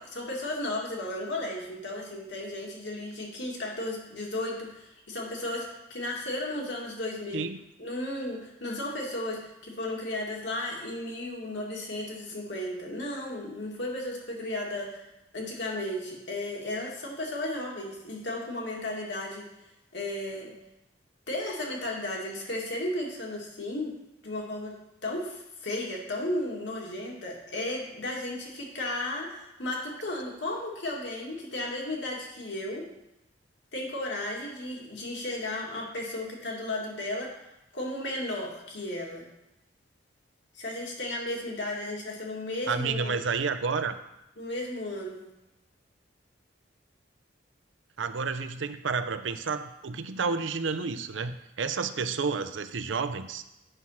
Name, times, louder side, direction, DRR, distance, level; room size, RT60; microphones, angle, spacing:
voice 1, 0.0-7.5 7.8-15.1 15.3-19.4 19.9-20.5 21.3-23.9 24.2-24.7 25.0-32.9 33.7-37.3 37.7-39.3 40.5-43.2 44.4-45.2, left 1 dB, 70° left, -2 dB, 2.1 m, -34 dB
voice 2, 42.7-44.0 48.0-53.4, right 5 dB, 85° right, 11 dB, 0.6 m, -30 dB
8.1 x 6.0 x 5.7 m, 0.90 s
head